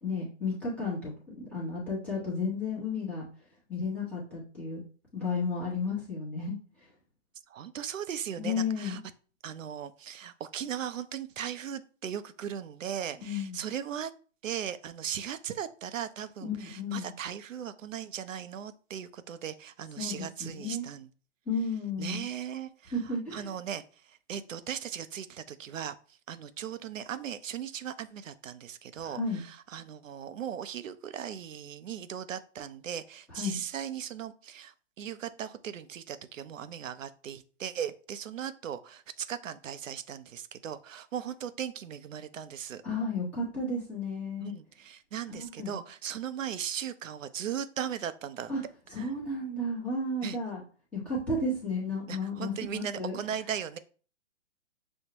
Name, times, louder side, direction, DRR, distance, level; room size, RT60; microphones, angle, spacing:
voice 1, 0.0-3.2 3.7-4.8 5.1-6.5 8.4-9.0 13.2-13.6 16.4-17.1 20.0-20.3 20.6-20.9 21.5-22.2 22.9-23.5 29.0-29.4 33.3-33.6 42.8-44.5 45.3-45.8 48.5-48.6 48.9-50.6 50.9-53.2, left 3 dB, 5° left, -8 dB, 0.8 m, -33 dB
voice 2, 7.5-9.0 9.4-14.1 14.4-21.1 22.0-42.8 44.4-48.5 49.0-49.1 50.2-50.4 52.1-53.8, right 9 dB, 85° right, 12 dB, 0.6 m, -38 dB
6.3 x 2.1 x 2.8 m, 0.40 s
hypercardioid pair, 155°, 38 cm